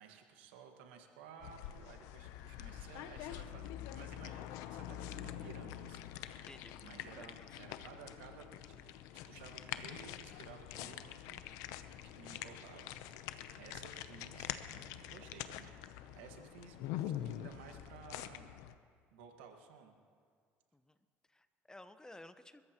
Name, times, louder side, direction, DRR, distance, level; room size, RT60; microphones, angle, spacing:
voice 1, 0.0-6.5 6.8-8.9 9.3-11.8 12.0-12.9 13.6-15.8 16.1-18.5 19.1-20.0, right 7 dB, 90° right, 4 dB, 1.6 m, -55 dB
sound 1, 1.4-18.7, left 12 dB, 80° left, 0.7 m, -45 dB
voice 2, 21.3-22.6, left 1 dB, 10° left, 10 dB, 1.0 m, -55 dB
29.5 x 14.0 x 3.0 m, 2.1 s
supercardioid pair, 70°, 6 cm